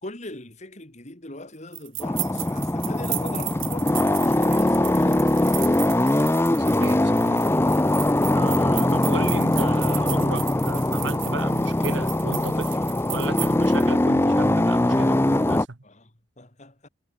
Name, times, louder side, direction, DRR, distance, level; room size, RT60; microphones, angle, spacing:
voice 1, 0.0-5.9 15.8-16.9, left 1 dB, 35° left, 2.9 m, -41 dB
sound 1, 1.7-13.9, right 18 dB, 90° right, 3.7 m, -35 dB
sound 2, 2.0-15.7, left 1 dB, 10° left, 0.5 m, -21 dB
voice 2, 6.7-7.4 8.3-12.8 13.1-15.8, right 3 dB, 65° right, 1.2 m, -34 dB
head